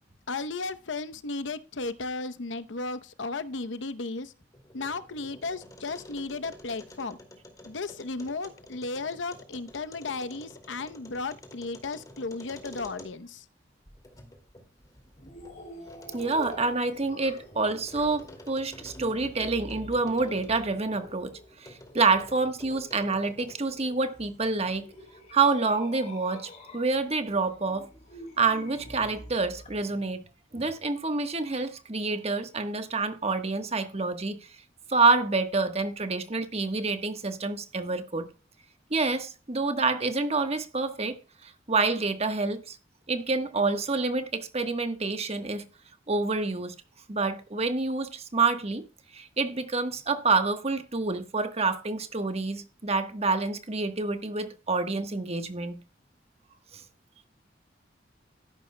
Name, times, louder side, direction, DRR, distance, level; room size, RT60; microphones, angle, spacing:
voice 1, 0.3-4.3 4.7-7.2 7.6-13.4, left 3 dB, 90° left, 0.8 m, -35 dB
sound 1, 4.4-13.4 13.9-21.2 21.6-23.7, left 1 dB, 20° left, 2.3 m, -50 dB
sound 2, 15.2-29.8, left 1 dB, 40° left, 3.1 m, -48 dB
voice 2, 16.1-21.3 21.6-24.9 25.3-27.9 28.4-30.2 30.5-34.4 34.9-38.3 38.9-41.2 41.4-42.8 43.1-45.6 46.1-46.7 47.1-48.8 49.1-55.7 56.7-56.8, right 3 dB, 35° right, 1.2 m, -27 dB
13.5 x 11.0 x 2.2 m
head